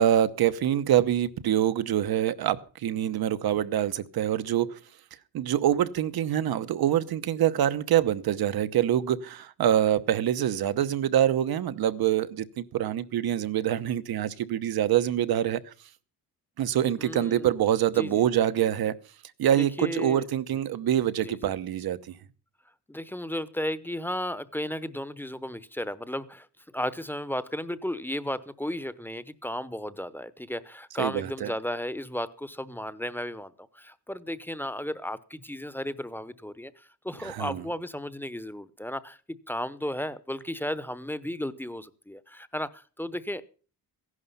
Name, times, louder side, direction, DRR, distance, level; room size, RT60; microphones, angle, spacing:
voice 1, 0.0-4.8 5.3-15.7 16.6-19.0 19.4-22.1 31.0-31.5 37.2-37.6, right 11 dB, 70° right, 1.0 m, -25 dB
voice 2, 17.0-17.5 17.9-18.3 19.6-20.2 21.2-21.5 22.9-26.5 26.7-43.4, left 1 dB, 5° left, 0.9 m, -34 dB
15.5 x 11.5 x 5.6 m
cardioid pair, 110°, 38 cm